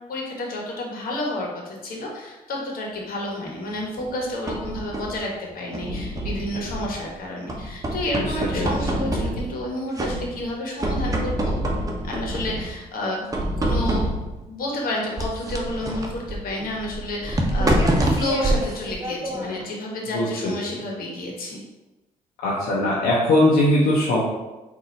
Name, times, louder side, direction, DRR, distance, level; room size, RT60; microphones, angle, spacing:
voice 1, 0.1-11.6 12.0-13.3 13.6-14.1 14.5-21.6, left 1 dB, 70° left, -1 dB, 1.2 m, -30 dB
sound 1, 4.0-5.2 5.7-7.1 7.5-9.7 10.0-10.5 10.8-12.8 13.3-14.4 15.2-19.7, right 1 dB, 20° right, 0.9 m, -26 dB
voice 2, 20.1-20.5 22.4-24.2, left 1 dB, 90° left, -5 dB, 0.8 m, -20 dB
3.9 x 2.6 x 4.2 m, 1.1 s
supercardioid pair, 65°, 16 cm